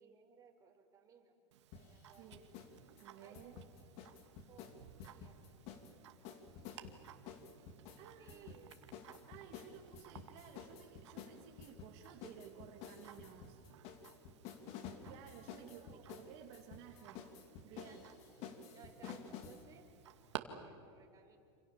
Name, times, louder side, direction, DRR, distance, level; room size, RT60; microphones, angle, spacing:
voice 1, 0.0-1.4 1.8-2.4 3.2-3.7 4.5-5.5 8.2-9.0 15.5-16.1 17.6-18.1 18.7-19.9 20.4-21.4, right 6 dB, 25° right, 2 dB, 4.2 m, -62 dB
Tick-tock, 1.5-20.4, right 12 dB, 85° right, 2.1 m, -57 dB
sound 1, 1.7-2.7 3.0-5.9 6.2-19.6, left 7 dB, 50° left, 2.8 m, -51 dB
voice 2, 2.2-2.5 2.9-3.6 8.0-8.7 9.3-13.6 15.0-17.3 17.6-18.1, right 9 dB, 50° right, 2 dB, 2.3 m, -56 dB
28.0 x 28.0 x 7.3 m, 2.5 s
supercardioid pair, 135°, 14 cm